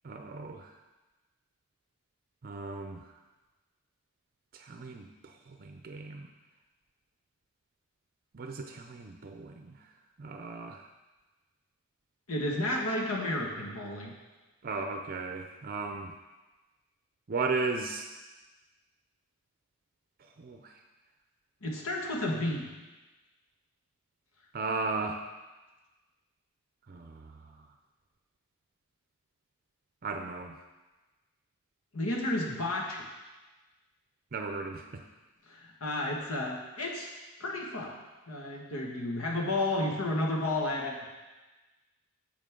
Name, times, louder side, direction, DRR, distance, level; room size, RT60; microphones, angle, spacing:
voice 1, 0.0-0.7 2.4-3.0 4.6-5.1 5.6-6.3 8.3-9.7 10.2-10.8 14.6-16.1 17.3-18.0 20.4-20.6 24.5-25.2 26.9-27.2 30.0-30.5 34.3-35.0, right 4 dB, 45° right, 5 dB, 0.5 m, -35 dB
voice 2, 12.3-14.1 21.6-22.7 31.9-33.1 35.5-37.1 37.4-37.9 38.3-41.1, left 1 dB, 75° left, -1 dB, 1.8 m, -32 dB
10.5 x 7.2 x 3.8 m, 1.2 s
head